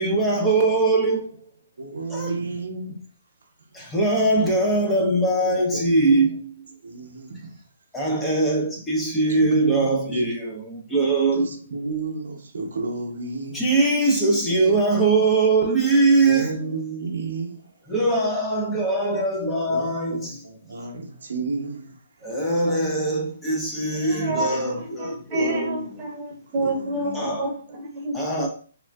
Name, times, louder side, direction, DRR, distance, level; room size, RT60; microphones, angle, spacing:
voice 1, 0.0-1.3 2.1-2.3 3.7-6.5 7.9-11.4 13.5-16.5 17.9-20.3 22.2-25.7 27.1-27.5 28.1-28.5, right 2 dB, 5° left, 0.7 m, -21 dB
voice 2, 1.8-3.0 3.4-3.9 5.7-5.8 6.8-7.6 9.3-10.2 11.3-13.7 16.2-17.8 19.7-22.6 24.0-24.8 25.3-26.1 26.5-27.5, right 3 dB, 75° right, 0.7 m, -32 dB
voice 3, 23.9-28.2, right 2 dB, 25° right, 0.9 m, -29 dB
3.6 x 2.4 x 2.3 m
hypercardioid pair, 150°, 0 cm